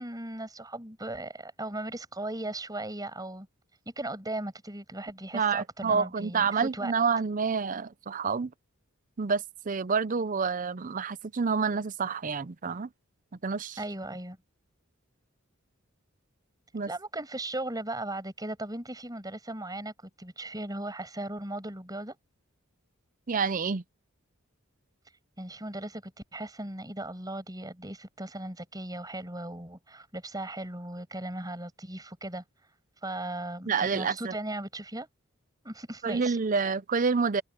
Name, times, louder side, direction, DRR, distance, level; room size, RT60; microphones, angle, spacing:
voice 1, 0.0-3.5 3.8-6.9 13.8-14.4 16.9-22.2 25.4-32.4 33.0-35.1 35.6-36.4, right 1 dB, 20° right, 6.7 m, -37 dB
voice 2, 5.3-8.5 9.2-12.9 13.4-13.8 16.7-16.9 23.3-23.8 33.7-34.3 36.0-37.4, right 5 dB, 40° right, 0.5 m, -28 dB
head